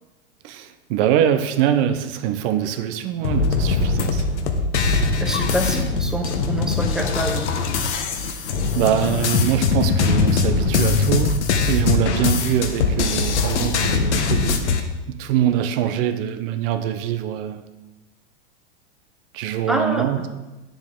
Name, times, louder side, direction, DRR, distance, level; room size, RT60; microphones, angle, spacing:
voice 1, 0.4-4.5 8.3-8.4 8.7-11.4 11.7-14.7 15.1-17.7 19.3-20.3, right 10 dB, 50° right, 9 dB, 0.9 m, -23 dB
sound 1, 3.2-14.8, left 4 dB, 80° left, 1.2 m, -21 dB
voice 2, 4.9-7.5 19.7-20.2, right 1 dB, ahead, 3 dB, 1.1 m, -26 dB
9.7 x 7.3 x 3.7 m, 1.1 s
hypercardioid pair, 115°, 34 cm